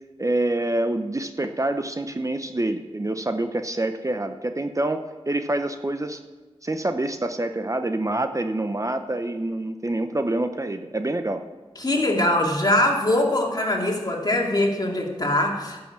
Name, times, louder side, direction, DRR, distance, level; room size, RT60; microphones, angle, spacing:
voice 1, 0.2-6.2 6.6-11.4, right 1 dB, 30° right, 7 dB, 0.7 m, -26 dB
voice 2, 11.8-15.9, left 1 dB, 40° left, 0 dB, 2.5 m, -22 dB
11.5 x 7.0 x 7.4 m, 1.2 s
wide cardioid pair, 50°, 11 cm